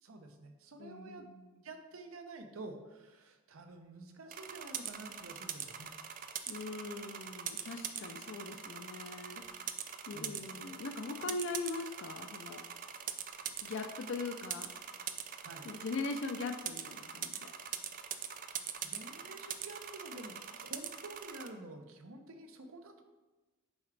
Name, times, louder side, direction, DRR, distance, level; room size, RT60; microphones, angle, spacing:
voice 1, 0.0-1.3 1.6-5.9 10.1-10.5 15.4-15.7 18.6-23.0, right 2 dB, 75° right, 6 dB, 0.7 m, -49 dB
voice 2, 0.8-1.6 6.5-12.6 13.6-14.7 15.6-17.5, left 3 dB, 60° left, 5 dB, 0.4 m, -41 dB
sound 1, 4.3-21.5, right 9 dB, 40° right, 0.4 m, -43 dB
7.0 x 4.8 x 3.3 m, 1.2 s
head